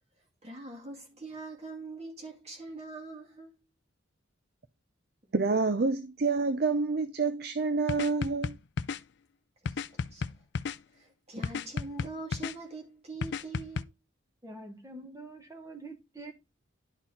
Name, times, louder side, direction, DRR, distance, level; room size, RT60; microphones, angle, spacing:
voice 1, 0.4-3.5 9.6-10.2 10.9-13.9, right 3 dB, 30° right, 2.2 m, -43 dB
voice 2, 5.3-8.6, right 4 dB, 50° right, 0.6 m, -28 dB
sound 1, 7.9-9.0 9.7-10.8 11.4-12.5 13.2-13.8, left 5 dB, 55° left, 0.4 m, -33 dB
voice 3, 14.4-16.3, right 2 dB, 15° right, 1.4 m, -45 dB
11.5 x 4.5 x 4.2 m
head